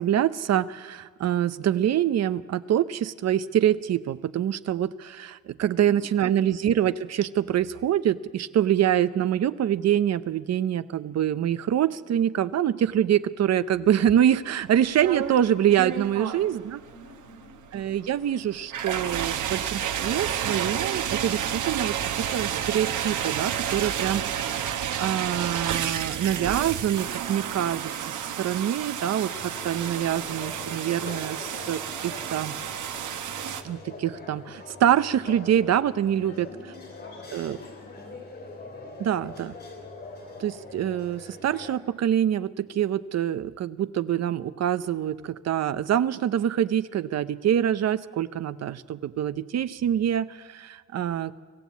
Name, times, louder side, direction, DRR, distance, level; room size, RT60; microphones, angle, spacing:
voice 1, 0.0-16.8 17.7-22.0 22.3-24.2 25.0-32.6 33.6-36.5 37.3-37.6 39.0-39.5 40.4-51.3, right 10 dB, 60° right, 13 dB, 0.7 m, -25 dB
voice 2, 5.7-6.5 16.1-17.6 36.2-38.2, left 2 dB, 60° left, 0 dB, 6.8 m, -50 dB
sound 1, 14.6-33.6, right 9 dB, 90° right, 1.2 m, -31 dB
sound 2, 29.3-41.7, left 3 dB, 35° left, 3.6 m, -43 dB
25.5 x 15.5 x 8.4 m, 1.5 s
wide cardioid pair, 165°, 30 cm